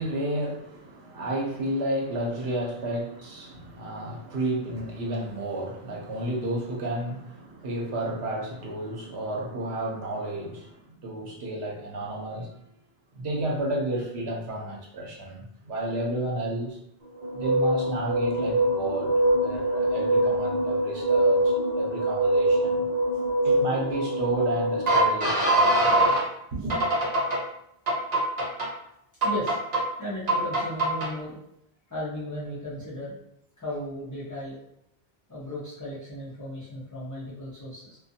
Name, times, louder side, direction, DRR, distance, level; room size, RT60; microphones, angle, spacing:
voice 1, 0.0-12.6 13.1-16.8 17.3-22.9 23.4-26.2 26.5-26.8, right 1 dB, 85° right, -1 dB, 1.0 m, -32 dB
sound 1, 17.2-26.2 26.7-27.4 27.9-28.7 29.2-29.8 30.3-31.1, right 1 dB, 45° right, 0.8 m, -23 dB
voice 2, 29.2-29.6 30.0-31.4 31.9-33.2 33.6-34.6 35.3-38.0, equal, 25° left, -9 dB, 0.5 m, -35 dB
2.4 x 2.4 x 2.6 m, 0.76 s
omnidirectional pair, 1.0 m